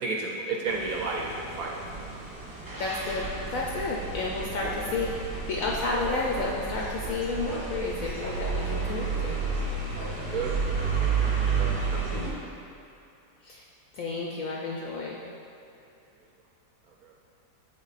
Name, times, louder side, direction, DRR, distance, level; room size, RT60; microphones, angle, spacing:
voice 1, 0.0-2.1 10.3-10.8 11.5-12.4 17.0-17.1, right 3 dB, 70° right, -2 dB, 0.9 m, -33 dB
sound 1, 0.7-12.3, right 5 dB, 30° right, 1.1 m, -31 dB
voice 2, 2.8-9.4 13.4-13.6 13.9-15.2, left 3 dB, 70° left, -3 dB, 0.8 m, -31 dB
Bark, 5.8-6.7 7.4-7.7 8.2-8.9 9.9-10.2, right 2 dB, 5° left, 0.6 m, -37 dB
7.1 x 3.7 x 4.0 m, 2.7 s
omnidirectional pair, 1.9 m